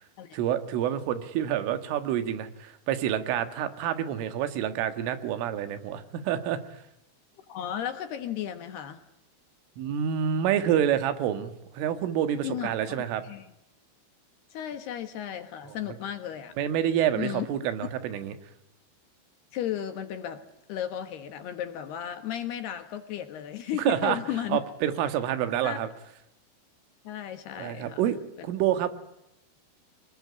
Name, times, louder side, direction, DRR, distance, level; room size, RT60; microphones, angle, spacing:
voice 1, 0.3-6.6 9.8-13.2 16.6-18.4 23.8-24.2 24.5-25.9 27.6-28.2 28.4-28.9, right 10 dB, 80° right, 10 dB, 4.2 m, -28 dB
voice 2, 7.5-9.0 12.4-13.5 14.5-16.5 17.1-17.5 19.5-20.4 20.7-24.6 25.6-25.8 27.0-28.0 28.4-28.5, left 10 dB, 65° left, 9 dB, 3.0 m, -34 dB
25.5 x 21.0 x 9.6 m, 0.89 s
omnidirectional pair, 5.7 m